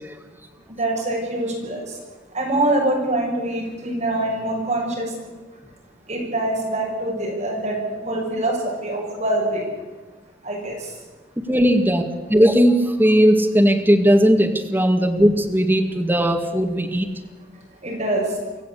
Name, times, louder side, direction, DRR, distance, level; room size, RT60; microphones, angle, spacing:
voice 1, 0.8-1.8 2.3-5.1 6.1-7.8 8.0-9.6 10.4-10.8 17.8-18.2, right 1 dB, 35° right, -1 dB, 6.6 m, -24 dB
voice 2, 11.4-12.0 12.3-17.1, equal, 10° right, 3 dB, 2.1 m, -17 dB
25.5 x 15.5 x 8.5 m, 1.2 s
head